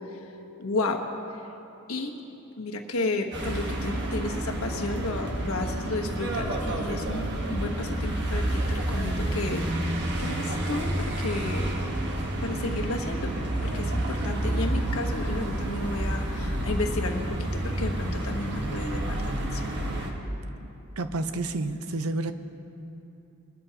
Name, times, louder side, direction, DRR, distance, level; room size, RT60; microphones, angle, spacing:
voice 1, 0.6-1.1 1.9-2.1 2.6-11.7 12.4-13.3 13.6-19.7, left 2 dB, 75° left, 2 dB, 1.2 m, -32 dB
sound 1, 3.3-20.1, right 1 dB, 55° right, 1.4 m, -29 dB
voice 2, 21.0-22.3, right 2 dB, 90° right, 10 dB, 0.7 m, -29 dB
21.5 x 13.0 x 2.9 m, 3.0 s
head